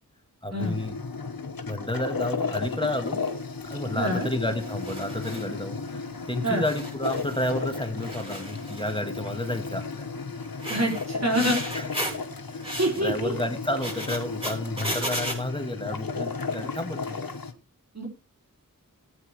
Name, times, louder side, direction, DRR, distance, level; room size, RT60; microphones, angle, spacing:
voice 1, 0.4-1.0 1.7-3.2 3.7-10.1 11.7-12.2 12.5-12.7 13.0-17.2, left 1 dB, 15° left, 6 dB, 1.8 m, -31 dB
sound 1, 0.6-17.5, left 4 dB, 90° left, 1.4 m, -34 dB
sound 2, 3.1-3.3 4.5-5.5 6.2-6.3 6.6-7.7 8.0-8.9 9.3-9.6 10.4-12.2 12.6-13.0 13.7-15.4, equal, 15° right, 7.4 m, -34 dB
voice 2, 3.9-4.3 6.4-6.6 10.7-11.6 12.8-13.4 17.9-18.1, right 1 dB, 50° right, -2 dB, 4.6 m, -26 dB
19.5 x 9.4 x 3.2 m, 0.31 s
wide cardioid pair, 60°, 34 cm